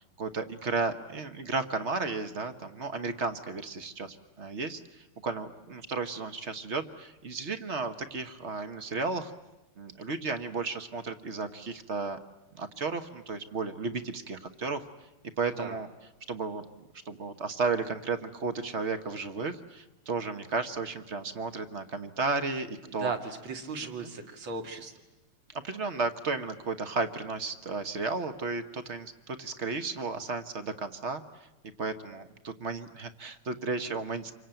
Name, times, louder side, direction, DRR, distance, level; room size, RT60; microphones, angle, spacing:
voice 1, 0.2-9.3 9.8-12.2 12.5-14.8 15.4-15.9 16.3-16.6 17.0-23.1 24.0-24.1 25.6-31.2 31.8-34.3, right 4 dB, 40° right, 10 dB, 1.1 m, -33 dB
voice 2, 15.4-15.8 23.0-24.9, right 4 dB, 65° right, 5 dB, 2.8 m, -36 dB
27.5 x 24.0 x 9.0 m, 0.99 s
omnidirectional pair, 2.4 m